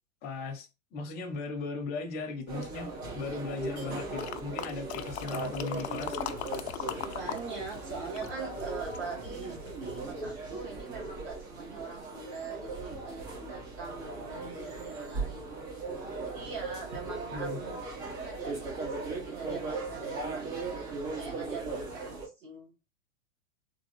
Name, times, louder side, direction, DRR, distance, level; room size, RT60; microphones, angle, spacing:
voice 1, 0.2-2.9 3.1-6.2 17.3-17.6, left 4 dB, 25° left, 0.7 m, -37 dB
sound 1, 2.5-22.3, right 3 dB, 55° right, 2.0 m, -38 dB
sound 2, 4.2-7.4 7.7-9.1 9.7-9.8, left 11 dB, 55° left, 0.5 m, -38 dB
sound 3, 5.0-10.1, left 2 dB, 70° right, 2.0 m, -53 dB
voice 2, 7.1-15.5 16.2-22.7, right 4 dB, 30° right, 1.5 m, -43 dB
3.6 x 2.5 x 3.1 m
hypercardioid pair, 145°, 39 cm